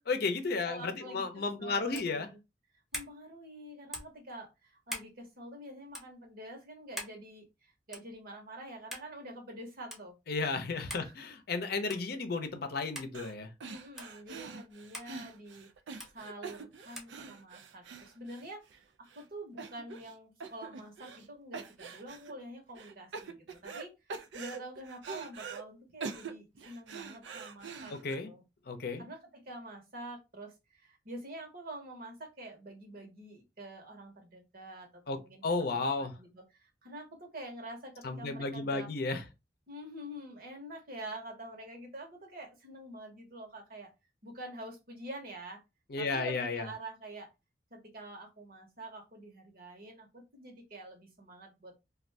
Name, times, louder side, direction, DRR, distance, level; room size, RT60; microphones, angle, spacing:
voice 1, 0.1-2.3 10.3-13.5 27.9-28.3 28.7-29.0 35.1-36.1 38.0-39.2 45.9-46.7, left 3 dB, 60° left, 0.6 m, -33 dB
voice 2, 0.6-2.4 2.9-10.1 11.0-11.1 13.7-15.7 16.1-18.6 19.0-28.0 28.2-28.4 29.0-38.9 39.7-43.9 44.2-45.6 46.0-47.3 47.7-51.7, right 1 dB, 55° right, 1.0 m, -47 dB
sound 1, 1.9-2.2 2.9-3.2 3.9-4.2 4.9-5.1 5.9-6.1 7.0-7.2 7.9-8.1 8.9-9.1 9.9-10.0 10.9-11.1 11.9-12.1 12.9-13.1 14.0-14.1 14.9-15.1 16.0-16.1 17.0-17.1, equal, ahead, 0.7 m, -42 dB
sound 2, 13.1-13.3 13.6-18.8 19.1-19.2 19.6-20.1 20.4-21.3 21.5-22.3 22.8-23.8 24.1-25.6 26.0-28.1, right 5 dB, 85° right, 0.5 m, -44 dB
2.5 x 2.3 x 3.2 m
head